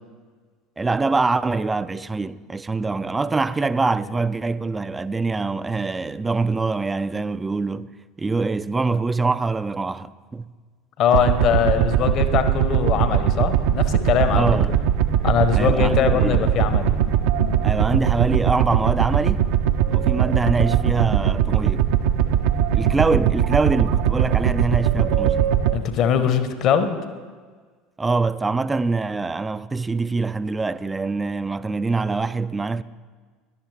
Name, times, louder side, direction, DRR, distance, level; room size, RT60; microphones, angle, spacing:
voice 1, 0.8-10.5 14.3-14.8 15.6-16.5 17.6-19.5 19.9-21.9 22.7-25.5 28.0-32.8, right 3 dB, 15° right, 0.4 m, -24 dB
voice 2, 11.0-14.4 15.2-17.0 17.4-17.6 25.7-27.0, left 8 dB, 45° left, 1.0 m, -21 dB
sound 1, 11.1-25.8, right 10 dB, 60° right, 0.6 m, -20 dB
16.5 x 11.5 x 3.3 m
figure-of-eight pair, 70°, 0 cm